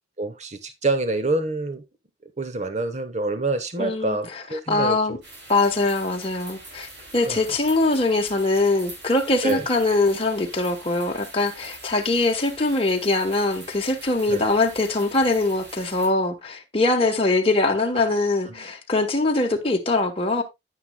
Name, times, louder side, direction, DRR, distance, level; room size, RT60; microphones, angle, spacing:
voice 1, 0.2-1.8 2.4-5.2 7.3-7.4 9.4-9.7 14.3-14.4 18.5-18.7, right 2 dB, 40° right, 1.2 m, -27 dB
voice 2, 3.8-4.2 4.7-5.2 5.5-20.4, left 2 dB, 30° left, 1.3 m, -22 dB
sound 1, 5.2-16.1, right 2 dB, 70° right, 5.7 m, -44 dB
9.7 x 9.5 x 2.3 m
head